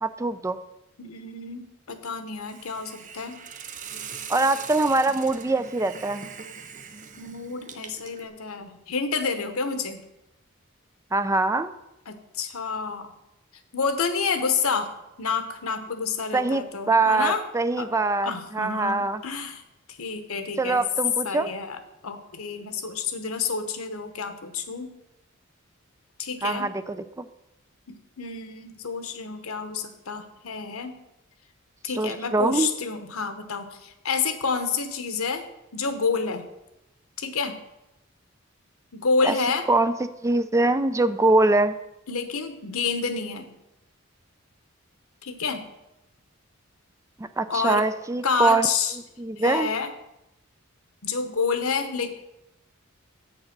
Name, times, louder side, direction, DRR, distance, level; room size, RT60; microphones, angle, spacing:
voice 1, 0.0-0.6 4.3-6.2 11.1-11.7 16.3-19.2 20.6-21.5 26.4-27.3 32.0-32.7 39.2-39.3 39.7-39.9 40.2-41.8 47.2-48.7 49.2-49.7, right 2 dB, 15° right, 12 dB, 0.4 m, -23 dB
voice 2, 1.0-3.4 7.2-10.0 12.1-13.1 13.7-17.4 17.8-17.9 18.2-19.6 19.9-20.8 21.2-21.8 22.0-24.9 26.2-26.7 27.9-30.9 31.8-35.4 35.7-36.5 37.2-37.6 38.9-39.7 42.1-43.5 45.2-45.7 47.5-47.9 48.2-49.0 49.4-49.9 51.0-52.1, left 5 dB, 90° left, 9 dB, 1.1 m, -29 dB
Hiss, 2.5-8.3, right 6 dB, 40° right, 0.7 m, -41 dB
7.8 x 6.5 x 5.9 m, 0.89 s
head